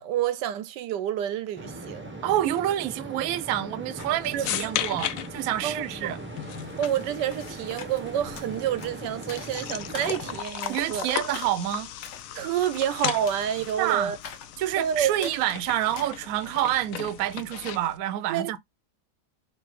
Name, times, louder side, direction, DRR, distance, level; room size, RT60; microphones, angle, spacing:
voice 1, 0.0-2.2 4.3-4.8 5.6-6.1 6.8-11.1 12.3-14.2 14.8-15.3 18.3-18.6, right 10 dB, 85° right, 1.3 m, -29 dB
sound 1, 1.6-10.4, right 1 dB, 15° right, 0.4 m, -40 dB
voice 2, 2.2-6.2 10.6-11.9 13.8-14.2 14.6-18.6, right 13 dB, 65° right, 0.9 m, -28 dB
sound 2, 4.0-18.0, left 11 dB, 70° left, 0.8 m, -37 dB
sound 3, 6.5-16.8, left 6 dB, 90° left, 1.7 m, -45 dB
4.1 x 2.7 x 4.6 m
omnidirectional pair, 1.8 m